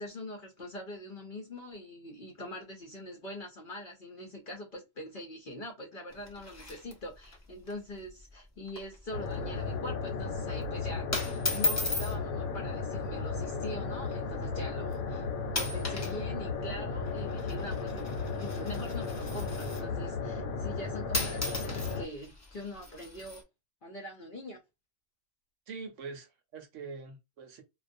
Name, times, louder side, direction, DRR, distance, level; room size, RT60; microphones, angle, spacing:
voice 1, 0.0-15.3 15.5-23.4 23.8-24.6, left 1 dB, 50° left, 0.7 m, -43 dB
sound 1, 6.1-7.4 7.7-7.8 8.1-8.3 8.7-9.0 9.3-9.6 10.4-10.6 11.1-12.2 13.2-13.4 14.1-14.2 14.9-15.1 15.5-16.2 16.4-20.0 20.8-20.9 21.1-23.4, left 2 dB, 25° left, 0.4 m, -36 dB
sound 2, 9.1-22.1, left 4 dB, 80° left, 1.1 m, -35 dB
voice 2, 25.7-27.6, right 4 dB, 65° right, 0.9 m, -44 dB
2.4 x 2.3 x 2.5 m
omnidirectional pair, 1.4 m